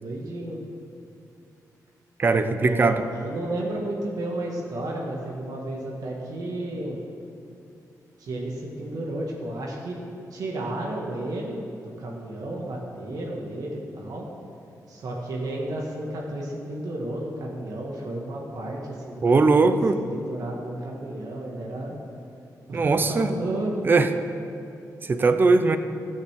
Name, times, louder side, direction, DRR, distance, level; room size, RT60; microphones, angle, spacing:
voice 1, 0.0-0.6 2.6-7.0 8.2-10.0 10.3-14.3 14.9-22.0 22.7-24.0, right 1 dB, 65° right, -2 dB, 1.7 m, -32 dB
voice 2, 2.2-3.0 19.2-20.0 22.7-23.3 23.8-24.1 25.0-25.8, right 3 dB, 30° right, 10 dB, 0.6 m, -20 dB
13.5 x 6.5 x 7.5 m, 2.6 s
wide cardioid pair, 145°, 7 cm